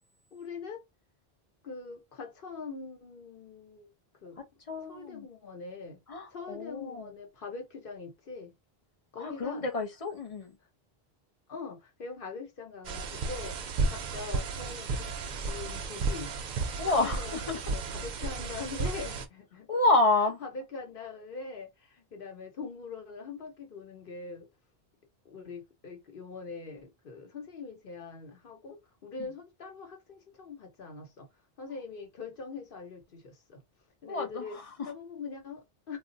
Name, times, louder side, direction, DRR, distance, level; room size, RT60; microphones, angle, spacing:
voice 1, 0.3-0.8 1.6-3.9 4.2-4.4 4.9-6.0 6.3-8.5 9.1-9.7 11.5-16.3 16.8-19.7 20.4-24.5 25.2-31.3 31.6-33.6 34.0-34.6 34.8-36.0, left 4 dB, 60° left, 1.1 m, -43 dB
voice 2, 4.7-5.3 6.1-7.1 9.2-10.5 16.8-17.6 19.7-20.4 34.1-34.9, left 2 dB, 40° left, 0.6 m, -29 dB
sound 1, 12.8-19.2, right 4 dB, 55° right, 0.6 m, -33 dB
2.3 x 2.1 x 3.8 m
omnidirectional pair, 1.0 m